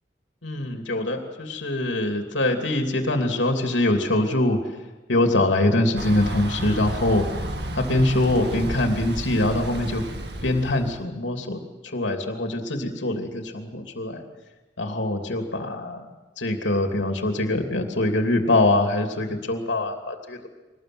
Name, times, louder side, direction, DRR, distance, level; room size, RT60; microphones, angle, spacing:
voice 1, 0.4-4.6 5.1-7.2 7.7-10.0 10.4-14.2 14.8-16.0 16.4-20.5, left 1 dB, 85° left, 4 dB, 2.9 m, -23 dB
Thunder / Bicycle, 6.0-11.0, right 1 dB, 60° right, 2.1 m, -32 dB
24.0 x 19.5 x 7.9 m, 1.1 s
head